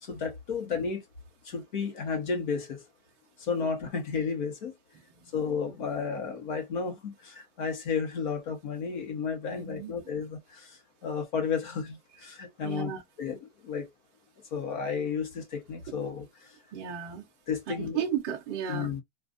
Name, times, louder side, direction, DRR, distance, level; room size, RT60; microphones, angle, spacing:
voice 1, 0.0-1.0 1.4-2.8 3.4-4.7 5.3-12.9 13.2-13.9 14.5-16.5 17.5-18.0 18.7-19.0, left 5 dB, 40° left, 1.1 m, -32 dB
voice 2, 9.5-9.9 12.6-13.0 16.7-17.3 17.7-18.9, right 9 dB, 20° right, 0.5 m, -34 dB
3.7 x 2.5 x 2.5 m
supercardioid pair, 170°, 35 cm